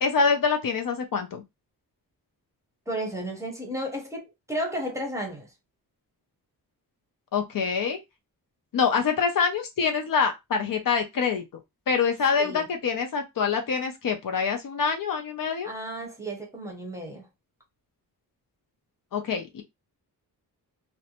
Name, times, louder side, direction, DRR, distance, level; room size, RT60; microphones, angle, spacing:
voice 1, 0.0-1.4 7.3-8.0 8.7-11.4 11.9-15.7 19.1-19.6, left 5 dB, 60° left, 0.6 m, -25 dB
voice 2, 2.9-5.5 12.4-12.7 15.6-17.3, right 1 dB, 10° right, 0.7 m, -33 dB
2.6 x 2.1 x 2.8 m
wide cardioid pair, 180°, 38 cm